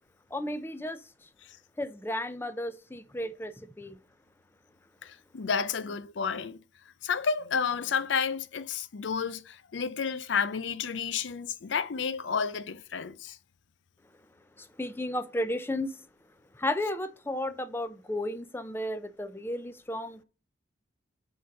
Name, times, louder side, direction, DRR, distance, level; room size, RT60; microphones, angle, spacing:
voice 1, 0.3-1.0 1.8-4.0 14.6-15.9 16.6-20.2, left 1 dB, 10° left, 0.5 m, -33 dB
voice 2, 5.0-6.6 7.0-13.4, left 6 dB, 80° left, 0.5 m, -31 dB
6.8 x 3.9 x 6.4 m
head